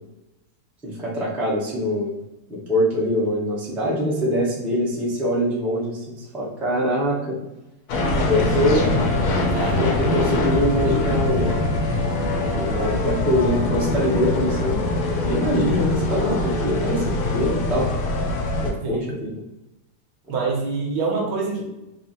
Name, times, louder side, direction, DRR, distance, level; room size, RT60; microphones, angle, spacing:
voice 1, 0.8-2.1 2.5-7.4 8.2-8.9 9.7-11.5 12.1-14.8 15.2-17.9 18.6-19.4, equal, ahead, -7 dB, 0.5 m, -24 dB
sound 1, 7.9-18.7, left 2 dB, 75° left, 1.6 m, -23 dB
voice 2, 9.2-9.9 18.8-19.2 20.3-21.6, right 4 dB, 70° right, -2 dB, 1.8 m, -26 dB
4.3 x 2.1 x 4.2 m, 0.94 s
omnidirectional pair, 2.4 m